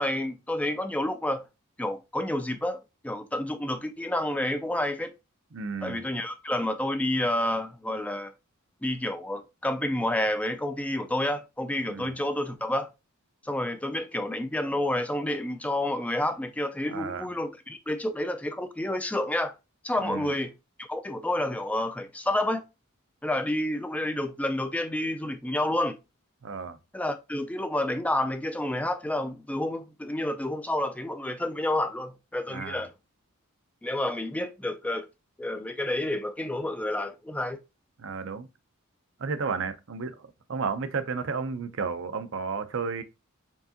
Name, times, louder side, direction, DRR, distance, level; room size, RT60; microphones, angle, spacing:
voice 1, 0.0-1.4 1.8-2.8 3.0-5.1 5.8-8.3 8.8-12.9 13.4-19.5 19.8-20.5 20.8-22.6 23.2-26.0 26.9-32.9 33.8-35.1 35.4-37.6, left 1 dB, 5° left, 0.4 m, -29 dB
voice 2, 5.5-6.0 11.8-12.1 16.9-17.3 20.0-20.3 26.4-26.8 32.5-32.8 38.0-38.5 39.2-40.2 40.5-43.0, right 5 dB, 65° right, 0.6 m, -32 dB
4.6 x 3.6 x 2.8 m
head